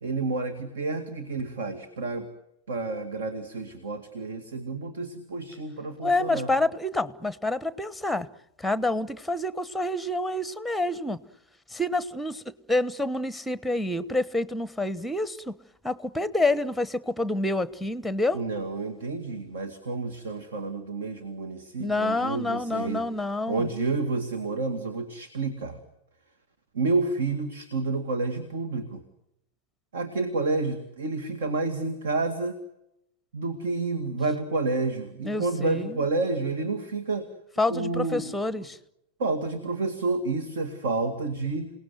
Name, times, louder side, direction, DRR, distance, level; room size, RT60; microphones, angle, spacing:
voice 1, 0.0-2.3 2.7-6.5 18.3-23.1 23.5-25.8 26.7-29.0 29.9-32.6 33.3-37.3 37.7-38.4 39.2-41.7, right 3 dB, 60° right, 9 dB, 2.2 m, -29 dB
voice 2, 6.0-8.3 8.6-11.2 11.7-12.4 12.7-15.5 15.8-18.4 21.8-23.7 35.2-36.0 37.6-38.8, left 2 dB, ahead, 17 dB, 1.1 m, -27 dB
28.5 x 18.5 x 9.2 m, 0.84 s
figure-of-eight pair, 90°, 0 cm